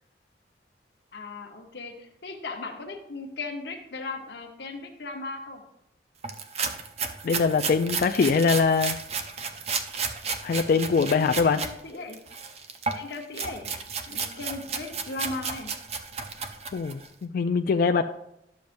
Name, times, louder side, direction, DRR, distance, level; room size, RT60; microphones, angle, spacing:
voice 1, 1.1-5.6 11.1-12.2 12.9-13.7 14.1-15.7, left 3 dB, 70° left, 3 dB, 1.0 m, -37 dB
sound 1, 6.2-11.7 12.1-17.1, right 5 dB, 35° right, 0.6 m, -33 dB
voice 2, 7.2-9.0 10.4-11.6 16.7-18.0, left 5 dB, 50° left, 6 dB, 0.3 m, -23 dB
11.5 x 6.9 x 2.6 m, 0.81 s
head